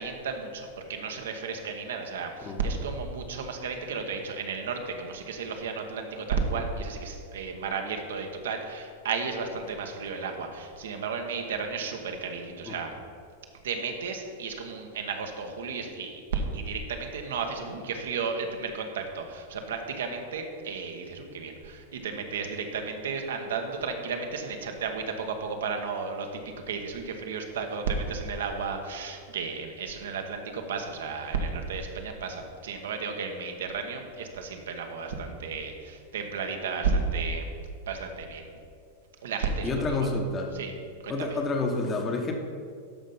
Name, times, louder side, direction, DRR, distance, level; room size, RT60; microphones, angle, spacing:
voice 1, 0.0-12.9 13.6-37.5 37.9-38.5 39.2-40.1 40.5-40.7 41.0-41.4, right 4 dB, 75° right, 4 dB, 1.3 m, -33 dB
voice 2, 39.6-40.5 41.1-42.3, left 3 dB, 25° left, 3 dB, 1.4 m, -28 dB
12.5 x 5.2 x 5.7 m, 2.3 s
hypercardioid pair, 100°, 0 cm